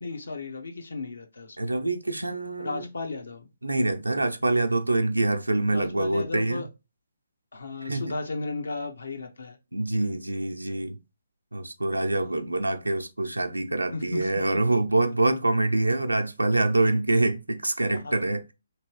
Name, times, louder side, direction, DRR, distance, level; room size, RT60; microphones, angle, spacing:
voice 1, 0.0-1.7 2.6-3.5 5.7-6.7 7.5-9.6 12.1-12.3 13.9-14.3 18.0-18.3, left 3 dB, 70° left, 0.8 m, -35 dB
voice 2, 1.6-2.9 3.6-6.7 7.8-8.0 9.7-11.0 11.5-18.5, right 2 dB, 90° right, 0.5 m, -25 dB
3.0 x 3.0 x 3.0 m
figure-of-eight pair, 135°, 0 cm